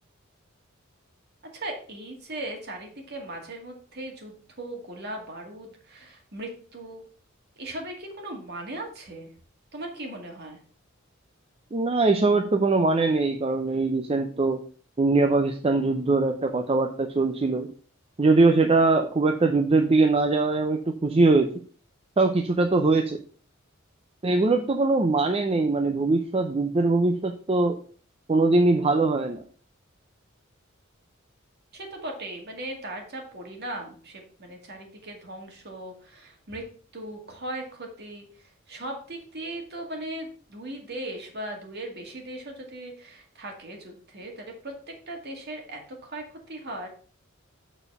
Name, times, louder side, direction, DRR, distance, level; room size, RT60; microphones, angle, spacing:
voice 1, 1.5-7.0 7.6-9.3 9.7-10.6 31.7-36.6 36.9-46.9, right 1 dB, 50° right, 2 dB, 2.1 m, -38 dB
voice 2, 11.7-14.6 15.0-17.7 18.2-21.5 22.2-23.2 24.2-27.8 28.3-29.4, right 3 dB, 30° right, 5 dB, 0.5 m, -22 dB
7.0 x 4.4 x 5.4 m, 0.44 s
head